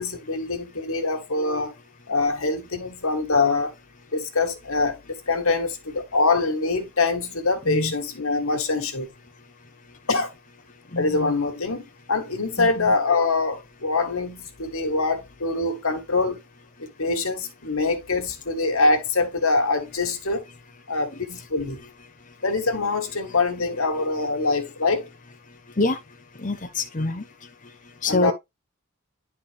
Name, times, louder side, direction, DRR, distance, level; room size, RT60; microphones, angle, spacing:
voice 1, 0.0-1.8 2.1-3.7 4.1-9.1 10.1-10.3 11.0-16.4 16.8-20.4 20.9-21.8 22.4-25.1 28.0-28.3, left 3 dB, 80° left, 1.9 m, -24 dB
voice 2, 10.9-11.3 12.6-12.9 25.8-26.0 26.4-27.2 28.0-28.3, left 2 dB, 35° left, 0.9 m, -25 dB
10.0 x 4.5 x 3.5 m
head